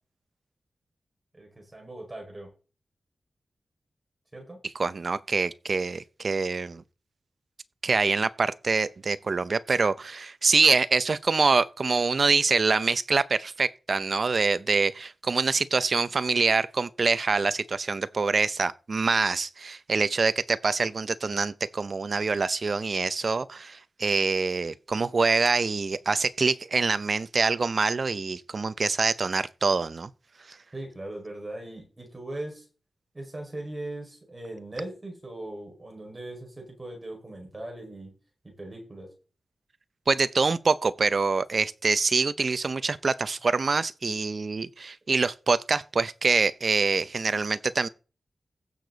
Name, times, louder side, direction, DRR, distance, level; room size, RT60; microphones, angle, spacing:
voice 1, 1.3-2.5 4.3-4.6 30.7-32.7 33.1-38.1 38.4-39.1, right 1 dB, 25° right, 5.0 m, -39 dB
voice 2, 4.6-6.8 7.8-30.1 30.5-30.6 40.1-47.9, right 4 dB, 50° right, 0.6 m, -25 dB
15.5 x 6.8 x 4.0 m
wide cardioid pair, 120°, 0 cm